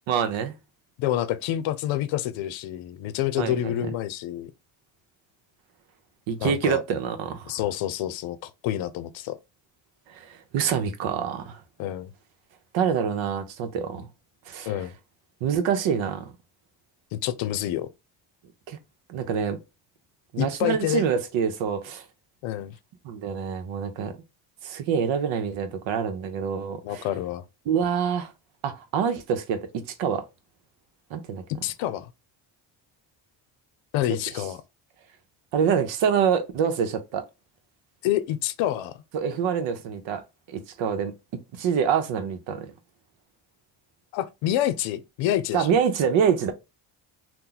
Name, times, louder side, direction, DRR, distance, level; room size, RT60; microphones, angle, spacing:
voice 1, 0.1-0.5 3.4-3.7 6.3-7.6 10.1-11.6 12.7-14.1 14.5-14.7 15.4-16.3 18.7-18.8 19.1-19.6 20.3-22.0 23.0-24.2 24.6-27.1 27.7-28.3 28.6-30.2 31.1-31.4 35.5-37.2 39.1-40.2 40.5-41.1 41.5-42.7 45.5-46.5, right 7 dB, 75° right, 0.8 m, -26 dB
voice 2, 1.0-4.5 6.4-6.8 7.5-9.4 11.8-12.1 14.7-14.9 17.1-17.9 20.4-21.1 22.4-22.8 26.8-27.4 31.5-32.1 33.9-34.6 38.0-39.0 44.1-45.7, left 12 dB, 75° left, 0.6 m, -28 dB
2.8 x 2.2 x 3.8 m
supercardioid pair, 75°, 46 cm